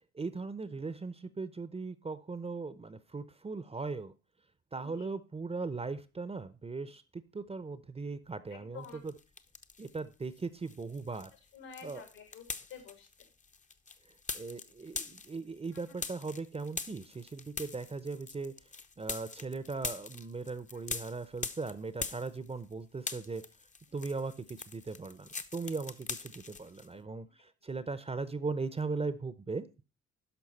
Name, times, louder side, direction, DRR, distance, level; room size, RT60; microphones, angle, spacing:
voice 1, 0.1-4.1 4.7-9.1 9.8-11.3 11.8-12.0 14.3-18.5 19.0-23.4 23.9-29.8, right 4 dB, 20° right, 14 dB, 0.8 m, -39 dB
voice 2, 4.7-5.1 8.5-9.0 11.1-13.3 15.9-16.0 20.7-20.8, left 7 dB, 70° left, 6 dB, 2.3 m, -51 dB
sound 1, 8.8-10.0 10.3-22.7 23.0-26.9, left 4 dB, 25° left, 0.8 m, -43 dB
11.5 x 5.9 x 4.2 m, 0.31 s
figure-of-eight pair, 45°, 31 cm